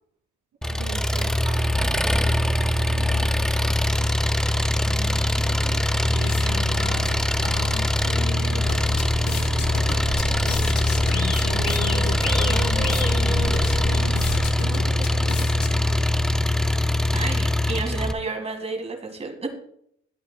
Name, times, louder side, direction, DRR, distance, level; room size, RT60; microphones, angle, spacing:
Engine, 0.6-18.1, left 1 dB, ahead, 0.3 m, -22 dB
voice 1, 0.6-4.1 4.5-4.9 5.7-7.3 8.1-8.9 9.2-11.1 11.6-14.0 14.6-16.1, right 5 dB, 85° right, 1 dB, 2.2 m, -40 dB
voice 2, 4.9-5.8 17.1-19.5, right 3 dB, 20° right, 2 dB, 1.7 m, -32 dB
sound 1, 5.6-16.2, left 6 dB, 75° left, 0.9 m, -36 dB
sound 2, 8.6-14.5, left 2 dB, 50° left, 2.2 m, -32 dB
12.5 x 8.2 x 2.2 m, 0.71 s
cardioid pair, 90°, 30 cm